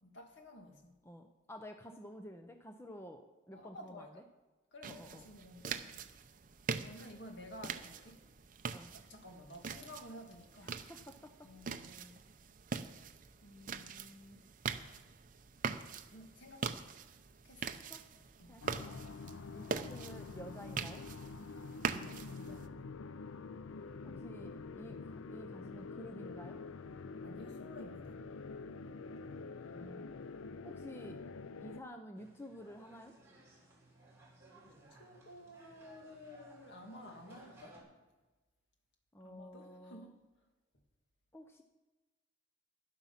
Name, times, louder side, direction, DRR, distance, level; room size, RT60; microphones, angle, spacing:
voice 1, 0.0-0.9 3.5-4.2 4.7-6.1 6.8-8.2 8.9-10.8 11.4-12.1 13.4-14.4 16.1-16.7 17.4-17.9 18.4-18.5 21.8-22.9 27.2-28.2 34.7-37.8 39.2-40.2, left 1 dB, 65° left, 3 dB, 1.9 m, -53 dB
voice 2, 1.0-4.2 4.9-5.2 8.7-9.0 10.6-11.5 11.8-11.9 17.9-18.0 18.5-19.0 19.5-21.0 24.0-26.6 29.7-30.1 30.6-31.2 31.6-33.1 39.1-40.1 41.3-41.6, equal, 10° left, 5 dB, 0.6 m, -51 dB
sound 1, 4.8-22.7, right 5 dB, 40° right, 0.6 m, -43 dB
sound 2, 18.6-31.8, left 4 dB, 90° left, 0.5 m, -46 dB
sound 3, 32.2-37.8, right 1 dB, 15° right, 3.4 m, -60 dB
11.5 x 11.5 x 5.7 m, 1.2 s
head